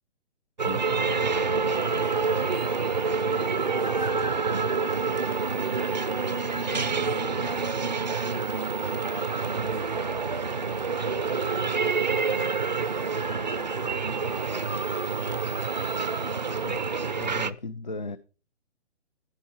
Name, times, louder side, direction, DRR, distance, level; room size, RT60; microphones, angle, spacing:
sound 1, 0.6-17.5, right 4 dB, 40° right, 0.5 m, -27 dB
voice 1, 1.2-5.7 6.2-8.3 8.6-10.5 10.9-13.0 14.3-16.2, right 2 dB, 5° left, 0.8 m, -46 dB
voice 2, 17.2-18.2, left 3 dB, 40° left, 0.4 m, -36 dB
15.5 x 5.5 x 4.3 m
hypercardioid pair, 175°, 35 cm